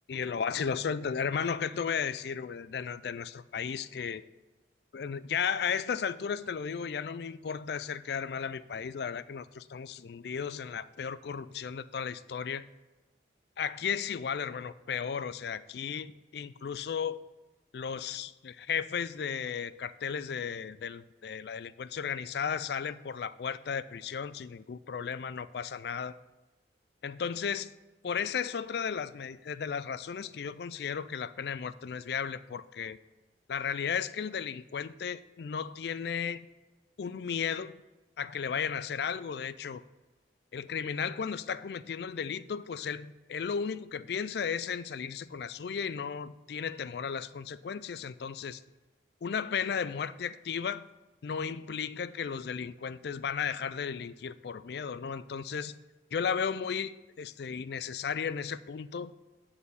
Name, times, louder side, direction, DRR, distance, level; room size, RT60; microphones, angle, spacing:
voice 1, 0.1-4.2 4.9-12.7 13.6-17.2 17.7-26.1 27.0-27.7 28.0-33.0 33.5-36.4 37.0-37.8 38.2-39.8 40.5-48.6 49.2-50.9 51.2-55.7 56.1-59.1, left 7 dB, 60° left, 16 dB, 0.3 m, -34 dB
9.4 x 4.3 x 6.8 m, 1.1 s
head